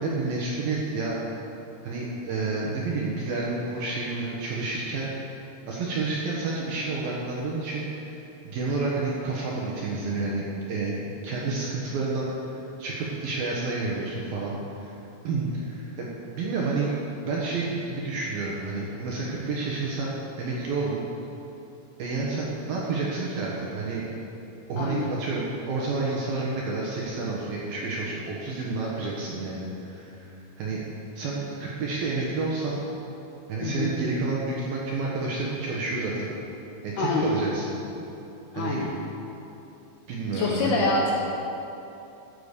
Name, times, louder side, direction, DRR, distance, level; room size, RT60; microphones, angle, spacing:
voice 1, 0.0-1.2 1.8-5.1 5.7-11.0 11.2-14.9 15.2-16.1 16.3-16.9 17.2-21.0 22.0-24.1 24.7-30.3 30.6-30.8 31.2-32.8 33.5-36.3 36.8-37.8 38.5-38.8 40.1-40.8, right 3 dB, 65° right, -4 dB, 2.5 m, -30 dB
voice 2, 24.8-25.1 33.6-34.0 37.0-37.3 38.5-38.9 40.3-41.1, left 3 dB, 75° left, -2 dB, 2.5 m, -26 dB
13.5 x 7.1 x 6.7 m, 2.9 s
omnidirectional pair, 5.5 m